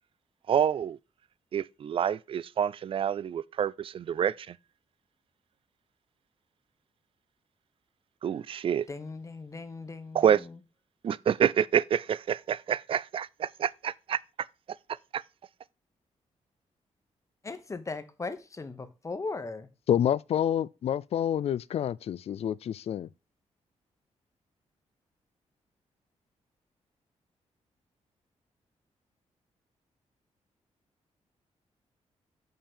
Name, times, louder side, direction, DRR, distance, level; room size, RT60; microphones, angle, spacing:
voice 1, 0.5-1.0 1.5-4.6 8.2-8.9 10.1-10.4 11.0-14.2 15.1-15.2, right 8 dB, 50° right, 0.4 m, -27 dB
voice 2, 8.9-10.6 17.4-19.7, left 3 dB, 25° left, 1.0 m, -38 dB
voice 3, 19.9-23.1, left 10 dB, 60° left, 0.4 m, -28 dB
6.7 x 5.7 x 5.5 m
wide cardioid pair, 125°, 12 cm